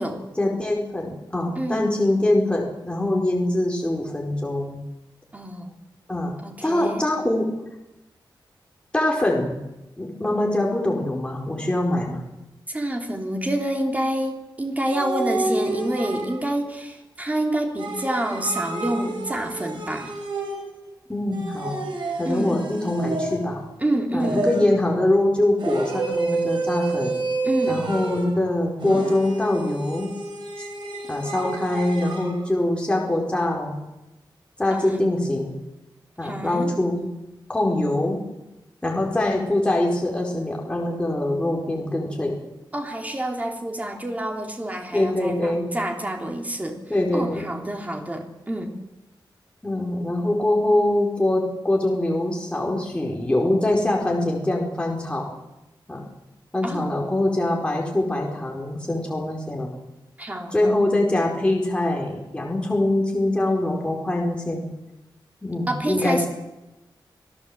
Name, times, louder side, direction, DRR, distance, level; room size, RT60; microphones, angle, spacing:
voice 1, 0.4-4.8 6.1-6.3 6.6-7.4 8.9-9.6 10.0-12.2 21.1-21.8 22.2-23.6 24.1-27.1 27.7-30.1 31.1-33.8 34.6-35.5 36.2-37.1 37.5-38.2 38.8-42.3 44.9-45.7 46.9-47.5 49.6-55.2 55.9-56.0 56.5-59.7 60.5-64.6 65.4-66.3, left 1 dB, 10° left, -1 dB, 4.6 m, -23 dB
voice 2, 1.5-1.9 5.3-5.7 6.4-7.0 12.7-20.1 22.2-22.6 23.8-24.4 27.4-27.8 34.7-35.0 36.2-36.7 42.7-46.8 47.1-48.8 56.6-56.9 60.2-60.7 65.7-66.3, right 1 dB, 20° right, 2 dB, 3.2 m, -27 dB
sound 1, 14.9-16.6 17.8-20.9 21.3-23.7 24.2-24.9 25.6-28.4 28.8-32.3, right 3 dB, 75° right, 6.3 m, -29 dB
26.5 x 16.5 x 8.0 m, 0.98 s
wide cardioid pair, 160°, 8 cm